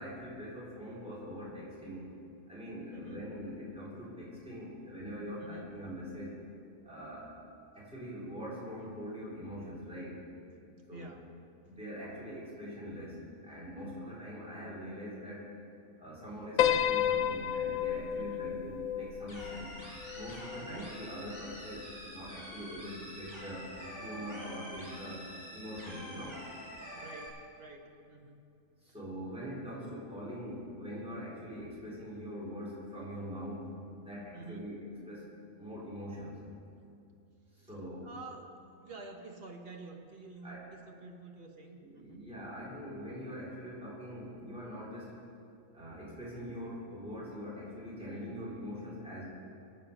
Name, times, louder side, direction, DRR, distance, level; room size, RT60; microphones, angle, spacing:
voice 1, 0.0-2.1 2.5-6.3 6.8-7.4 7.7-10.2 10.9-11.1 11.6-13.2 13.4-15.5 16.0-19.7 20.1-25.3 25.5-26.4 28.8-34.8 35.1-35.3 35.6-36.3 37.7-38.1 40.4-40.6 41.8-45.1 45.7-49.3, equal, 5° right, -8 dB, 3.8 m, -43 dB
voice 2, 2.9-3.3 5.4-5.7 10.9-11.3 18.2-18.6 20.6-21.0 26.9-28.4 28.9-29.0 34.3-34.8 37.5-42.2 42.6-42.8, right 3 dB, 45° right, 2 dB, 1.5 m, -49 dB
Piano, 16.6-21.0, left 10 dB, 90° left, 1.1 m, -32 dB
sound 1, 19.3-27.3, equal, 30° left, 4.7 m, -47 dB
23.0 x 8.5 x 5.3 m, 2.5 s
omnidirectional pair, 1.4 m